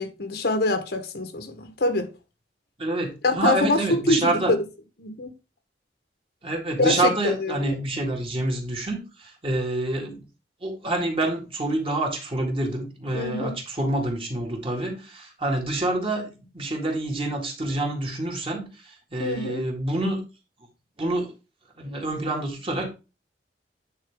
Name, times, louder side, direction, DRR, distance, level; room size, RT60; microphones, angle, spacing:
voice 1, 0.0-2.1 3.2-4.6 5.0-5.3 6.8-7.8 13.1-13.6 19.2-19.6, left 2 dB, 65° left, 1.0 m, -25 dB
voice 2, 2.8-4.5 6.4-10.2 10.6-18.7 19.1-20.2 21.0-21.3 21.8-22.9, right 2 dB, 30° right, 1.9 m, -27 dB
9.1 x 4.3 x 3.5 m
head